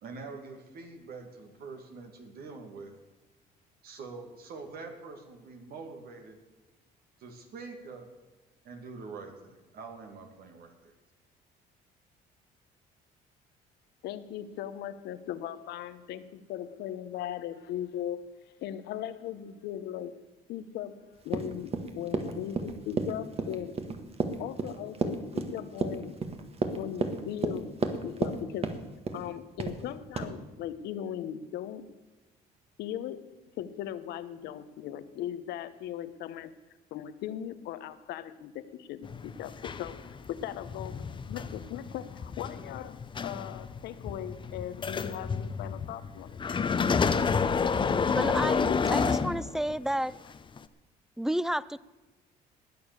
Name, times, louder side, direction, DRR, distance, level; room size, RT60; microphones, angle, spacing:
voice 1, 0.0-2.9 3.8-6.4 7.2-8.1 8.6-10.9, right 4 dB, 65° right, 4 dB, 2.4 m, -45 dB
voice 2, 14.0-20.1 20.5-23.8 24.4-26.2 26.7-28.7 29.1-31.9 32.8-33.3 33.6-36.5 36.9-46.6, left 11 dB, 80° left, 13 dB, 1.0 m, -38 dB
Run, 21.3-28.4 28.6-29.2 29.6-29.8 30.2-30.3, right 4 dB, 35° right, 1.6 m, -31 dB
sound 1, 39.0-49.9 50.6-50.7, left 5 dB, 30° left, 0.8 m, -30 dB
voice 3, 48.1-50.1 51.2-51.8, right 1 dB, 5° right, 20 dB, 0.4 m, -31 dB
20.0 x 7.0 x 6.8 m, 1.2 s
cardioid pair, 110°, 17 cm